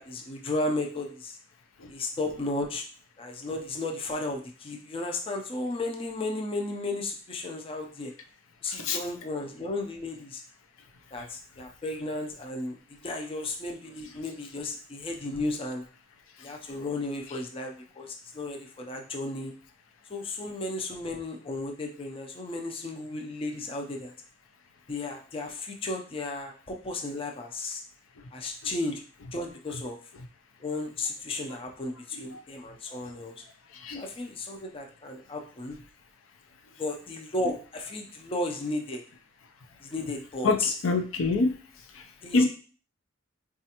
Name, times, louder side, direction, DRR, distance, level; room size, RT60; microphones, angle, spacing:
voice 1, 0.0-1.4 1.9-2.8 3.2-8.1 8.6-10.4 11.1-12.8 13.0-15.8 16.4-19.5 20.1-24.1 24.9-27.8 28.3-29.0 29.3-30.0 30.6-33.4 33.9-35.8 36.8-39.0 39.8-40.7 42.2-42.4, left 2 dB, 30° left, 1 dB, 0.5 m, -34 dB
voice 2, 8.7-9.0 32.3-32.4 33.7-34.0 40.4-40.6 40.8-41.5 41.9-42.0 42.3-42.4, left 3 dB, 80° left, 6 dB, 0.5 m, -25 dB
4.1 x 2.4 x 2.8 m, 0.39 s
head